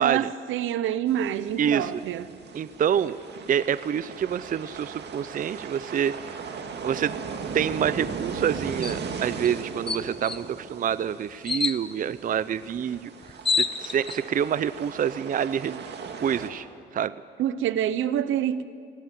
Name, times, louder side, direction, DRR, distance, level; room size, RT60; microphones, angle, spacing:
voice 1, 0.0-2.3 17.4-18.7, right 10 dB, 80° right, 0.9 m, -27 dB
sound 1, 1.1-16.5, right 5 dB, 60° right, 2.1 m, -38 dB
voice 2, 1.6-2.0 2.6-3.2 3.5-6.1 6.8-7.1 7.5-13.1 13.6-15.8 16.2-16.7 16.9-17.1, right 8 dB, 45° right, 0.5 m, -27 dB
sound 2, 8.8-9.0 9.4-9.5 9.9-10.4 11.5-11.8 12.9-13.0 13.2-14.2, left 4 dB, 25° left, 0.9 m, -27 dB
18.0 x 17.5 x 9.1 m
cardioid pair, 90°, 20 cm